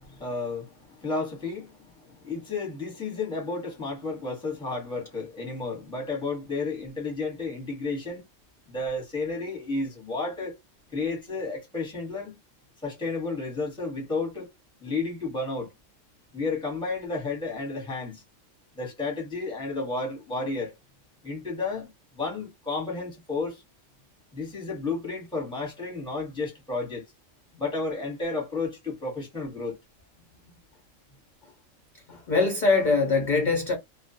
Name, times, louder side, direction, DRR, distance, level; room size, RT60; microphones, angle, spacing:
voice 1, 0.0-8.2 8.7-10.5 10.9-12.4 12.8-14.5 14.8-15.7 16.3-18.2 18.7-20.7 21.2-23.6 24.3-27.0 27.6-29.8, left 3 dB, 5° left, 0.9 m, -32 dB
voice 2, 32.1-33.8, left 3 dB, 50° left, 0.6 m, -23 dB
2.3 x 2.1 x 2.6 m
omnidirectional pair, 1.4 m